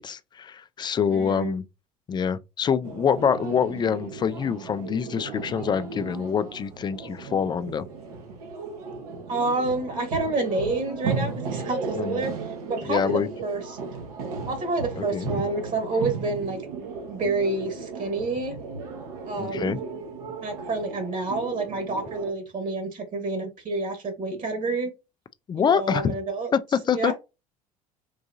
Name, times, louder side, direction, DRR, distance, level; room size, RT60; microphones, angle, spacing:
voice 1, 0.0-1.6 2.1-7.9 11.9-12.2 12.8-13.3 15.0-15.3 19.4-19.8 25.5-26.2 26.5-27.1, left 7 dB, 25° left, 0.3 m, -25 dB
voice 2, 1.1-1.5 9.3-13.8 14.5-16.6 17.1-18.6 19.2-19.8 20.4-24.9 25.5-26.5 26.9-27.1, right 3 dB, 45° right, 1.3 m, -28 dB
sound 1, 2.8-22.3, right 4 dB, 75° right, 1.0 m, -35 dB
3.8 x 2.7 x 2.4 m
hypercardioid pair, 70°, 19 cm